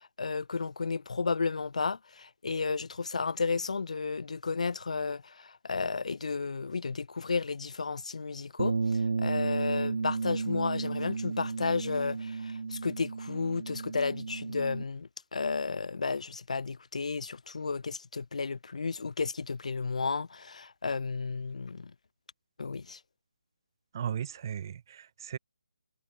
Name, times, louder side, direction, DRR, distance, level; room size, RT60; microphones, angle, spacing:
voice 1, 0.2-5.2 5.6-8.7 9.2-21.9 22.6-23.0, left 4 dB, 65° left, 0.4 m, -32 dB
Bass guitar, 8.6-14.8, right 4 dB, 65° right, 1.2 m, -33 dB
voice 2, 23.9-25.4, right 9 dB, 35° right, 0.6 m, -36 dB
figure-of-eight pair, 155°, 4 cm